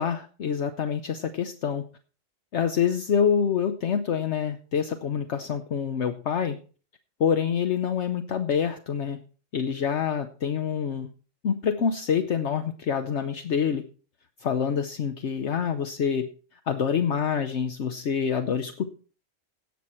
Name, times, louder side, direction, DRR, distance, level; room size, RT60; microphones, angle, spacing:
voice 1, 0.0-1.8 2.5-6.6 7.2-9.2 9.5-11.1 11.4-13.8 14.4-16.3 16.7-18.9, left 7 dB, 65° left, 8 dB, 1.1 m, -26 dB
17.5 x 6.4 x 4.4 m, 0.37 s
omnidirectional pair, 1.3 m